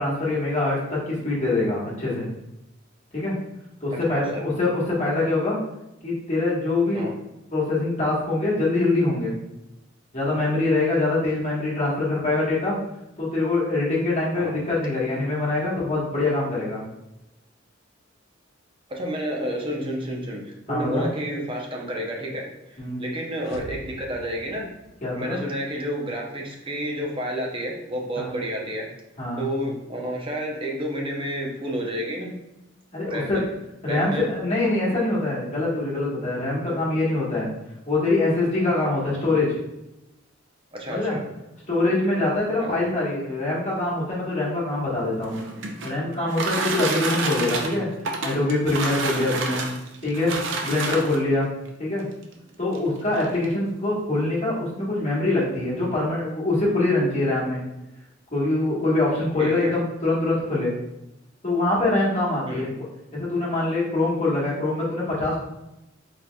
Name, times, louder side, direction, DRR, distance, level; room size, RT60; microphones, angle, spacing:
voice 1, 0.0-2.3 3.1-3.3 3.8-5.6 6.0-7.1 7.5-9.3 10.1-12.8 13.2-16.8 20.7-21.1 22.8-23.0 25.0-25.4 28.1-28.3 29.2-29.5 32.9-33.4 33.8-37.5 37.9-39.6 40.9-41.2 41.7-45.4 45.8-47.9 48.2-49.6 50.0-51.5 51.8-52.0 52.6-57.6 58.3-60.7 61.4-62.7 63.1-65.4, left 2 dB, 35° left, -6 dB, 1.3 m, -24 dB
voice 2, 3.9-4.5 6.9-7.2 14.3-14.6 18.9-24.7 25.1-28.9 29.4-32.4 33.1-33.5 33.8-34.3 34.9-35.0 36.7-36.8 40.7-41.3 42.6-42.8 49.1-49.4 50.9-51.1 59.4-59.8 62.5-62.7, equal, 25° right, -1 dB, 0.7 m, -30 dB
sound 1, 23.4-25.5, left 1 dB, 70° left, 0.4 m, -43 dB
sound 2, 45.1-51.3 52.2-52.3 52.7-52.8 53.1-53.5, right 3 dB, 65° right, 0.5 m, -29 dB
4.1 x 3.8 x 2.3 m, 0.91 s
head